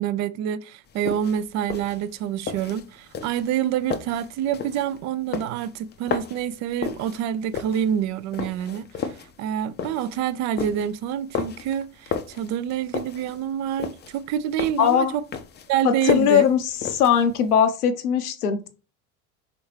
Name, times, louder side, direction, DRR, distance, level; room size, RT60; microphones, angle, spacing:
voice 1, 0.0-15.2 15.7-16.4, right 10 dB, 40° right, 0.5 m, -27 dB
sound 1, 0.9-17.5, left 6 dB, 25° left, 0.5 m, -33 dB
voice 2, 14.8-15.1 15.8-18.7, left 8 dB, 80° left, 0.8 m, -20 dB
4.2 x 3.6 x 3.2 m
figure-of-eight pair, 70°, 45 cm